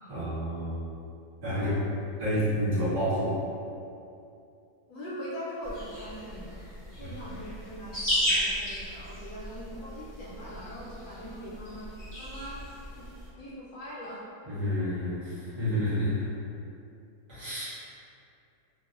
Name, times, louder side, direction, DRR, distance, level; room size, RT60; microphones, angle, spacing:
voice 1, 0.0-0.9 1.4-1.8 2.2-3.4 7.0-7.1 14.5-16.3 17.3-17.6, equal, 50° right, -13 dB, 1.2 m, -29 dB
voice 2, 1.5-1.9 4.9-6.6 7.0-11.9 12.2-12.6 13.0-13.1 13.4-14.2, equal, 70° left, -8 dB, 1.1 m, -41 dB
sound 1, 5.6-13.3, equal, 20° left, 0.5 m, -35 dB
2.9 x 2.1 x 2.3 m, 2.6 s
omnidirectional pair, 1.8 m